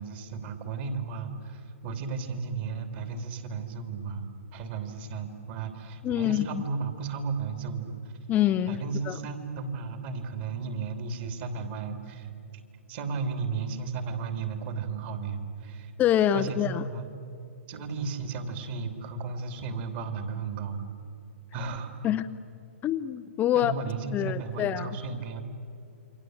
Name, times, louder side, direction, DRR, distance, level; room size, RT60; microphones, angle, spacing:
voice 1, 0.0-7.9 8.7-12.3 12.9-15.9 16.3-17.0 17.7-20.9 21.5-21.9 23.5-25.4, right 4 dB, 40° right, 6 dB, 3.3 m, -34 dB
voice 2, 6.0-6.6 8.3-9.2 16.0-16.8 22.0-22.3 22.8-23.7 24.1-24.9, left 11 dB, 20° left, 9 dB, 0.6 m, -26 dB
28.5 x 24.5 x 8.1 m, 2.6 s
hypercardioid pair, 135°, 8 cm